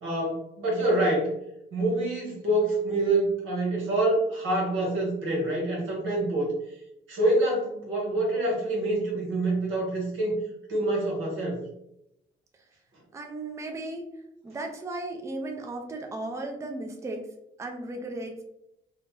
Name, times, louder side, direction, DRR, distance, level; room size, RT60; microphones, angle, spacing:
voice 1, 0.0-1.3 1.7-6.5 7.1-10.4 10.7-11.6, right 1 dB, 80° right, -3 dB, 1.4 m, -26 dB
voice 2, 13.1-14.1 14.4-17.3 17.6-18.4, right 2 dB, 15° right, 2 dB, 0.4 m, -35 dB
2.7 x 2.1 x 3.1 m, 0.81 s
cardioid pair, 90°, 20 cm